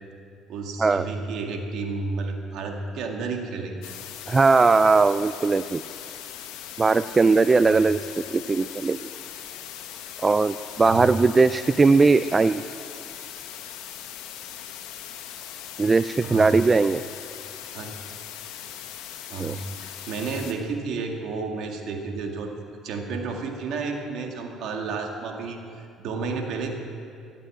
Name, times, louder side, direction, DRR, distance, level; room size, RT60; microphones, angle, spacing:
voice 1, 0.5-3.9 7.6-7.9 10.8-11.1 16.2-16.6 17.7-17.9 19.3-22.5 22.8-26.7, right 4 dB, 70° right, 3 dB, 2.0 m, -31 dB
sound 1, 3.8-20.5, left 10 dB, 85° left, 1.1 m, -40 dB
voice 2, 4.3-5.8 6.8-9.0 10.2-12.6 15.8-17.0 19.4-19.5, right 4 dB, 25° right, 13 dB, 0.3 m, -19 dB
16.5 x 8.3 x 8.7 m, 2.5 s
cardioid pair, 90°, 0 cm